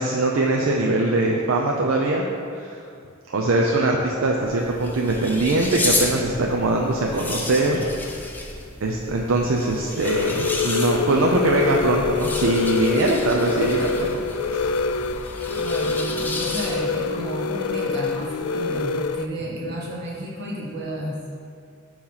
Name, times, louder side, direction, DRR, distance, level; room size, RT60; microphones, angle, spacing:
voice 1, 0.0-2.3 2.5-2.8 3.3-7.9 8.2-8.3 8.8-14.2 14.5-14.7, right 2 dB, 70° right, -1 dB, 0.5 m, -22 dB
sound 1, 4.3-17.1, left 2 dB, 10° left, 0.6 m, -32 dB
sound 2, 10.0-19.3, left 5 dB, 85° left, 0.3 m, -25 dB
voice 2, 15.5-21.3, equal, 55° right, -4 dB, 1.5 m, -32 dB
8.5 x 3.1 x 5.6 m, 2.4 s
head